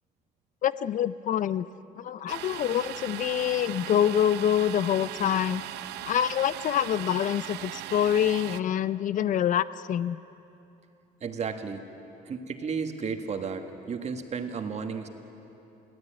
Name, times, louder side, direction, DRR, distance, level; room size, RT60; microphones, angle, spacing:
voice 1, 0.6-1.7 2.0-5.6 6.0-10.2, left 10 dB, 50° left, 16 dB, 0.5 m, -26 dB
Domestic sounds home sounds, 2.3-8.6, right 15 dB, 80° right, 0.6 m, -38 dB
voice 2, 11.2-11.8 12.2-15.1, right 5 dB, 40° right, 6 dB, 1.7 m, -33 dB
23.0 x 16.0 x 8.9 m, 2.9 s
cardioid pair, 110°, 17 cm